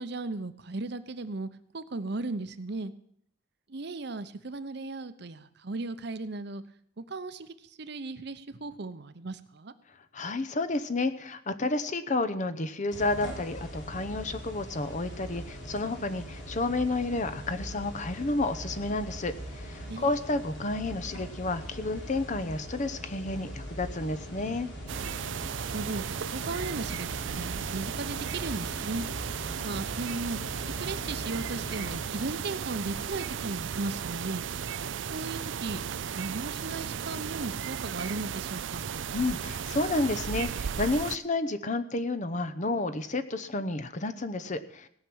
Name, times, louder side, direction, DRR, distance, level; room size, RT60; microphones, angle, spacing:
voice 1, 0.0-1.5 1.7-2.9 3.7-6.6 7.0-9.7 19.8-20.1 25.7-26.0 26.3-27.1 27.3-29.1 29.6-34.4 35.1-35.8 36.1-38.9, right 3 dB, 60° right, 12 dB, 0.8 m, -36 dB
voice 2, 10.1-24.7 39.1-44.9, left 2 dB, 40° left, 10 dB, 0.8 m, -31 dB
sound 1, 12.9-32.0, equal, 85° left, 3.8 m, -41 dB
sound 2, 24.9-41.2, right 7 dB, 85° right, 0.5 m, -35 dB
17.5 x 6.0 x 8.7 m, 0.67 s
head